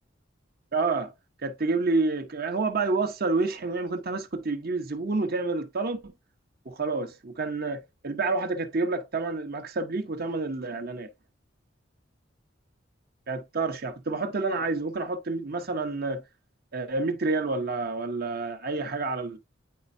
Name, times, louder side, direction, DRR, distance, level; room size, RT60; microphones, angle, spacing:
voice 1, 0.7-1.1 1.4-6.1 6.6-11.1 13.3-16.2 16.7-19.4, right 3 dB, 55° right, 0.9 m, -29 dB
9.4 x 4.2 x 2.6 m
head